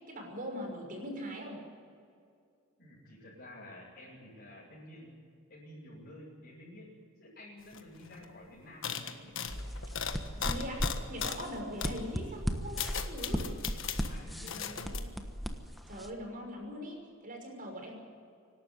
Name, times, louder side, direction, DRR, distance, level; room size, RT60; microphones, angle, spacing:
voice 1, 0.1-1.6 10.3-13.5 15.9-18.0, equal, 45° right, 1 dB, 5.9 m, -41 dB
voice 2, 2.8-5.1 5.5-9.4 14.0-15.2, left 1 dB, 50° left, -7 dB, 7.8 m, -51 dB
sound 1, 7.7-7.8 8.0-8.3 8.8-11.5 11.8-12.0 12.5-14.1 14.5-15.0, left 8 dB, 65° left, 1.5 m, -38 dB
sound 2, 9.5-16.1, equal, ahead, 1.3 m, -37 dB
25.5 x 12.5 x 10.0 m, 2.3 s
head